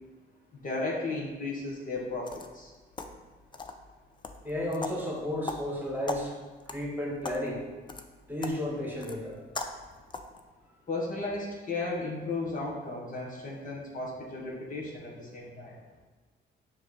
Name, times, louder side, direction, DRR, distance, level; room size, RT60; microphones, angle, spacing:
voice 1, 0.6-2.7 10.9-15.7, left 2 dB, 45° left, -3 dB, 1.3 m, -35 dB
sound 1, 2.0-10.4, left 3 dB, 25° left, 0.5 m, -42 dB
voice 2, 4.4-6.3 6.7-7.6 8.3-9.4, left 1 dB, 10° right, -3 dB, 1.5 m, -33 dB
6.4 x 3.1 x 4.9 m, 1.3 s
cardioid pair, 90°, 20 cm